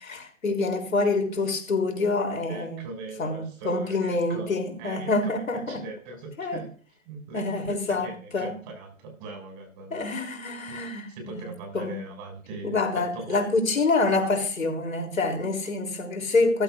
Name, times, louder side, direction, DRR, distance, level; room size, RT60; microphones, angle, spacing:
voice 1, 0.1-2.8 3.2-5.8 6.4-6.6 7.3-8.5 9.9-12.1 12.6-16.6, left 3 dB, 75° left, 3.7 m, -26 dB
voice 2, 2.5-4.5 4.8-5.3 5.7-6.7 7.1-10.0 10.7-10.8 11.1-13.5, right 3 dB, 35° right, 7.2 m, -40 dB
15.0 x 15.0 x 2.6 m
figure-of-eight pair, 130°, 40 cm